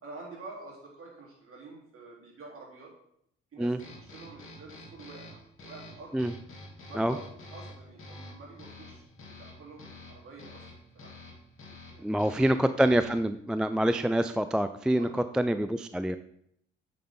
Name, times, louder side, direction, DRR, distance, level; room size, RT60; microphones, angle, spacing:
voice 1, 0.0-2.9 3.5-6.2 6.9-11.1 11.9-13.0 15.0-15.2, right 3 dB, 45° right, -3 dB, 3.7 m, -48 dB
sound 1, 3.8-13.3, left 2 dB, 45° left, 2.8 m, -48 dB
voice 2, 12.0-15.1 15.3-16.2, right 1 dB, 5° right, 11 dB, 0.3 m, -26 dB
8.6 x 7.2 x 3.8 m, 0.72 s
figure-of-eight pair, 45°, 30 cm